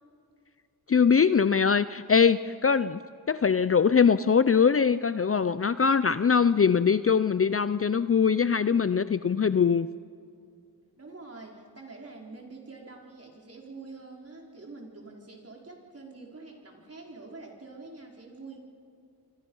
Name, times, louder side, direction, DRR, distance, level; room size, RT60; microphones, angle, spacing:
voice 1, 0.9-3.0 3.3-9.9, left 6 dB, 35° left, 14 dB, 0.6 m, -22 dB
voice 2, 11.0-18.6, right 3 dB, 40° right, 0 dB, 4.6 m, -46 dB
28.0 x 24.5 x 5.6 m, 2.4 s
cardioid pair, 65°, 39 cm